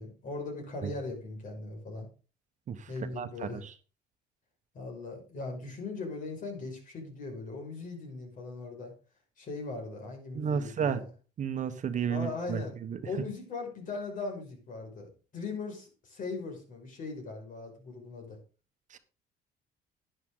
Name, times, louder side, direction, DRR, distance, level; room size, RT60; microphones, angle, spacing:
voice 1, 0.0-2.1 2.9-3.7 4.7-8.9 9.4-11.1 12.1-12.7 13.0-18.4, left 3 dB, 50° left, 2 dB, 5.6 m, -39 dB
voice 2, 3.2-3.7 10.3-11.0 11.4-13.0 18.9-19.0, right 7 dB, 45° right, 10 dB, 1.3 m, -32 dB
11.0 x 10.0 x 3.9 m, 0.34 s
cardioid pair, 110°, 17 cm